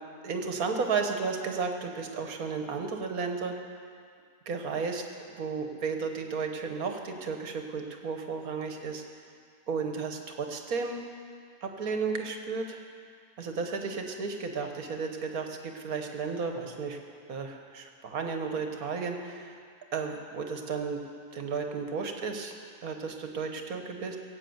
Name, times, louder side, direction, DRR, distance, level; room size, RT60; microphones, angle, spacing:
voice 1, 0.2-3.5 4.5-5.0 5.4-9.0 9.7-11.0 11.6-12.8 13.4-17.0 17.3-19.6 19.9-21.0 21.3-22.5 22.8-24.2, right 5 dB, 70° right, 4 dB, 1.5 m, -33 dB
17.0 x 8.5 x 7.8 m, 2.2 s
omnidirectional pair, 1.6 m